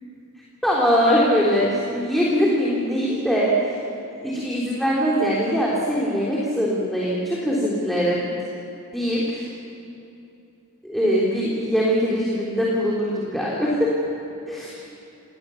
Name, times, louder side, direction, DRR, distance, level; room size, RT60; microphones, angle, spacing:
voice 1, 0.6-3.8 4.2-8.2 8.9-9.5 10.8-13.9 14.5-14.8, equal, ahead, -6 dB, 3.6 m, -22 dB
29.0 x 19.0 x 7.2 m, 2.8 s
head